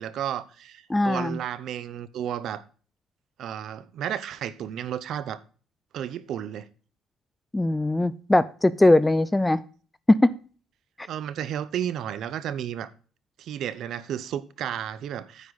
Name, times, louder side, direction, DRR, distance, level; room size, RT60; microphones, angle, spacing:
voice 1, 0.0-2.6 3.4-5.4 5.9-6.7 11.1-12.9 13.4-15.5, right 10 dB, 50° right, 0.8 m, -32 dB
voice 2, 0.9-1.4 7.5-9.6 10.1-10.3, left 2 dB, 5° left, 0.3 m, -20 dB
9.8 x 8.2 x 4.1 m
cardioid pair, 170°, 0 cm